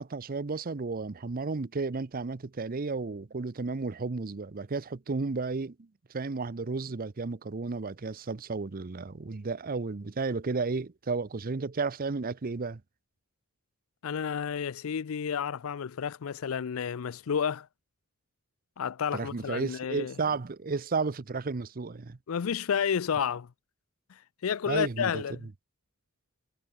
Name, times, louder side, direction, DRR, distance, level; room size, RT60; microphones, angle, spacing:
voice 1, 0.0-5.9 6.1-12.8 19.1-22.2 24.7-25.2, right 4 dB, 45° right, 0.7 m, -33 dB
voice 2, 14.0-17.7 18.8-20.1 22.3-23.5 24.1-25.5, left 7 dB, 80° left, 0.5 m, -31 dB
head